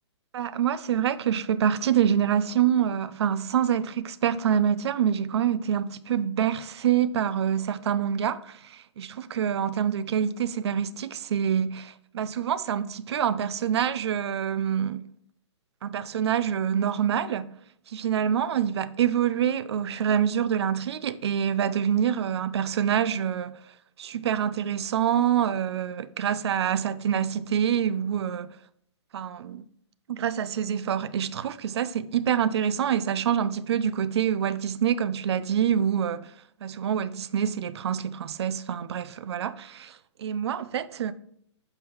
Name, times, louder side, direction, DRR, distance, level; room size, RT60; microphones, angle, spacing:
voice 1, 0.3-15.0 15.8-17.5 17.9-23.5 24.0-28.5 29.1-29.6 30.1-36.3 36.6-41.1, right 9 dB, 60° right, 0.4 m, -26 dB
6.3 x 5.4 x 3.1 m
hypercardioid pair, 160°, 15 cm